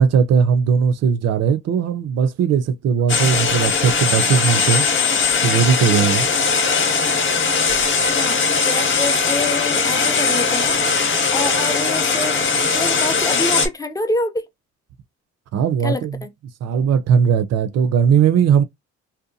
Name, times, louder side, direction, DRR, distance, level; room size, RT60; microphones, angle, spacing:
voice 1, 0.0-4.9 5.4-6.3 15.5-16.2 16.6-18.6, right 7 dB, 60° right, 0.5 m, -18 dB
sound 1, 3.1-13.7, left 5 dB, 40° left, 0.7 m, -19 dB
voice 2, 8.1-10.8 11.3-14.5 15.8-16.3, left 2 dB, 10° left, 0.4 m, -27 dB
2.7 x 2.2 x 2.5 m
cardioid pair, 90°, 30 cm